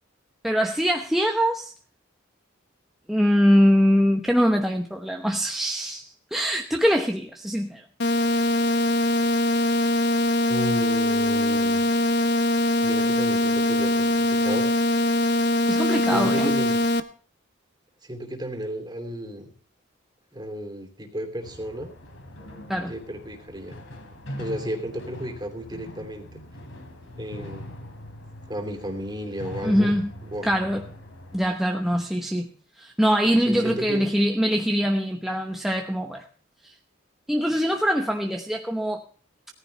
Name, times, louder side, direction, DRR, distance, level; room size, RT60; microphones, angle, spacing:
voice 1, 0.4-1.7 3.1-7.8 15.7-16.5 22.7-22.9 29.6-30.1 30.4-30.8 31.3-32.5 32.8-36.2 36.6-36.7 37.3-39.0, equal, ahead, 3 dB, 0.9 m, -23 dB
sound 1, 8.0-17.0, left 2 dB, 55° left, 1.0 m, -22 dB
voice 2, 10.5-11.8 12.8-14.7 16.1-16.8 18.0-19.5 20.3-21.9 22.9-23.7 24.3-26.4 27.2-27.6 28.5-29.9 30.2-30.5 33.5-34.1, equal, 20° right, 4 dB, 2.9 m, -33 dB
sound 2, 21.4-31.5, left 1 dB, 85° left, 3.2 m, -41 dB
18.0 x 14.5 x 3.4 m, 0.43 s
head